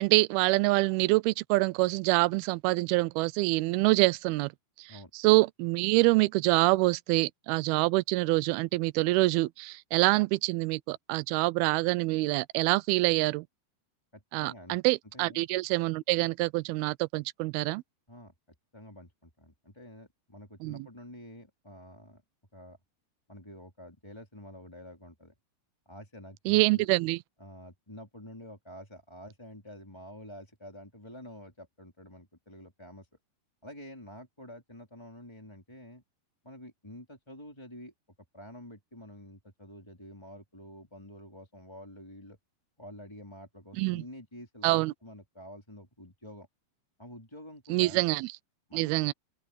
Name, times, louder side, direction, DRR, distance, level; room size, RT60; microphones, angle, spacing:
voice 1, 0.0-4.5 5.1-13.5 14.3-17.8 20.6-20.9 26.5-27.2 43.8-44.0 44.6-44.9 47.7-48.3 48.7-49.1, right 22 dB, 80° right, 2.3 m, -26 dB
voice 2, 14.1-14.8 15.1-15.4 18.1-18.3 18.7-22.2 22.5-22.8 23.3-25.3 25.8-26.9 27.4-33.1 33.6-36.0 36.4-37.9 38.3-42.4 42.8-46.5 47.0-48.0 48.7-49.1, equal, 5° left, 3.3 m, -48 dB
omnidirectional pair, 4.9 m